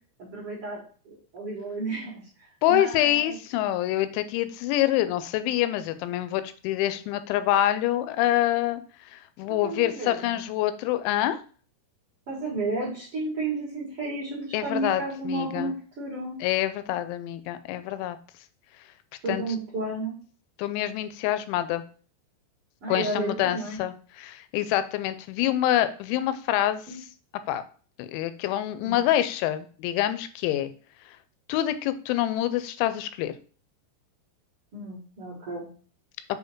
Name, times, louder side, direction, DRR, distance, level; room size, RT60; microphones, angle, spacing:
voice 1, 0.2-0.8 1.0-3.4 9.6-10.4 12.3-16.3 19.2-20.1 22.8-23.8 26.9-27.0 28.8-29.1 34.7-35.7, right 2 dB, 55° right, -6 dB, 1.6 m, -32 dB
voice 2, 2.6-8.8 9.1-11.4 14.5-15.7 16.4-18.2 19.3-19.4 20.6-21.8 22.9-26.8 27.5-27.6 28.0-30.7 31.5-33.3, left 13 dB, 85° left, 12 dB, 2.9 m, -26 dB
7.9 x 2.8 x 4.5 m, 0.41 s
omnidirectional pair, 5.3 m